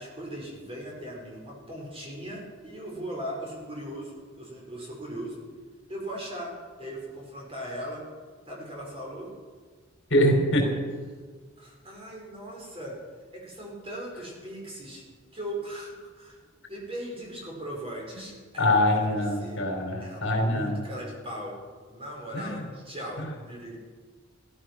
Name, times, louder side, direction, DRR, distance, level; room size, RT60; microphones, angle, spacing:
voice 1, 0.0-5.4 5.9-6.5 6.8-8.0 8.5-9.3 11.6-12.9 13.3-15.0 15.3-16.4 16.7-19.6 20.0-21.6 21.9-23.8, right 1 dB, 30° right, -2 dB, 4.9 m, -38 dB
voice 2, 10.1-10.8 18.6-20.8 22.3-22.6 23.2-23.3, left 1 dB, 65° left, 1 dB, 4.1 m, -24 dB
15.0 x 14.5 x 6.1 m, 1.5 s
head